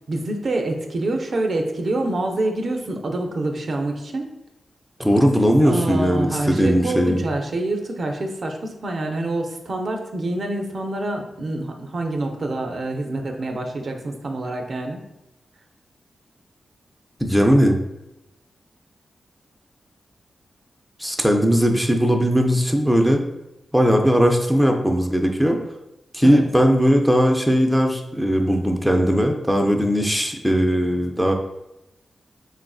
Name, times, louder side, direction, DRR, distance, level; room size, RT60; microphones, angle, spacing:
voice 1, 0.1-4.3 5.6-15.0 26.2-26.4, right 2 dB, 60° right, 3 dB, 0.4 m, -26 dB
voice 2, 5.0-7.2 17.2-17.8 21.0-23.3 23.7-25.6 26.1-31.3, equal, ahead, 2 dB, 0.4 m, -18 dB
3.4 x 2.4 x 2.3 m, 0.90 s
cardioid pair, 65°, 0 cm